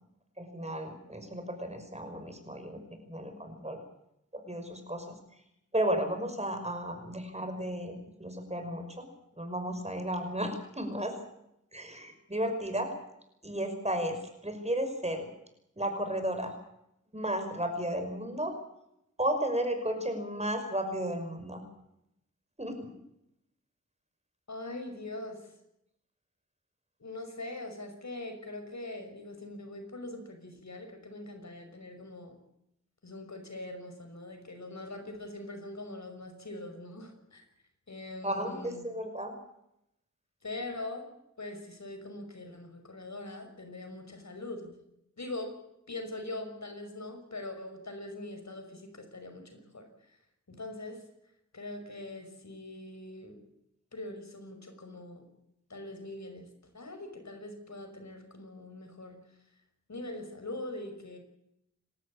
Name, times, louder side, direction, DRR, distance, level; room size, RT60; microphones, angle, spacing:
voice 1, 0.4-3.8 4.3-5.2 5.7-9.1 9.4-11.1 11.7-12.9 13.4-14.2 14.4-15.3 15.8-16.5 17.1-18.5 19.2-21.6 22.6-22.9 38.2-39.3, right 1 dB, 20° right, 6 dB, 5.7 m, -33 dB
voice 2, 24.5-25.5 27.0-32.4 33.0-37.5 37.9-38.8 40.4-41.1 41.4-44.7 45.2-50.2 50.5-51.0 51.5-53.4 53.9-55.3 55.7-59.2 59.9-61.2, left 2 dB, 70° left, 6 dB, 5.8 m, -42 dB
28.5 x 13.0 x 8.7 m, 0.81 s
wide cardioid pair, 70°, 30 cm